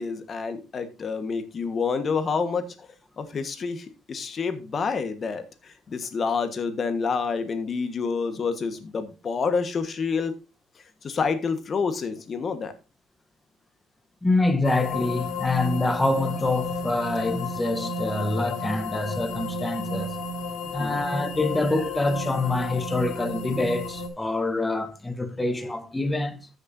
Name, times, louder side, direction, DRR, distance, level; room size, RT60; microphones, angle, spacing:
voice 1, 0.0-2.7 3.2-10.4 11.0-12.7 20.8-21.0, left 5 dB, 35° left, 1.4 m, -28 dB
voice 2, 14.2-20.1 20.7-26.5, left 2 dB, 10° left, 1.0 m, -26 dB
sound 1, 14.6-24.1, left 3 dB, 90° left, 2.5 m, -32 dB
14.0 x 6.6 x 2.7 m
cardioid pair, 135°, 0 cm